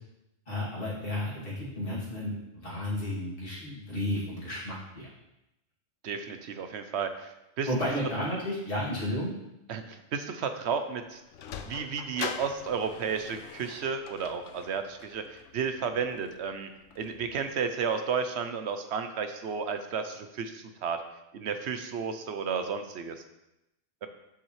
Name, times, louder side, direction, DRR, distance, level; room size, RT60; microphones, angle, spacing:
voice 1, 0.5-5.1 7.6-9.3, left 1 dB, 50° left, -8 dB, 2.8 m, -32 dB
voice 2, 6.0-7.7 9.7-11.2 11.6-16.7 17.0-21.0 21.3-23.2 24.0-24.1, right 6 dB, 65° right, 8 dB, 0.9 m, -32 dB
Sliding door, 10.9-17.5, left 7 dB, 90° left, 1.0 m, -43 dB
7.3 x 7.2 x 3.2 m, 0.91 s
omnidirectional pair, 1.2 m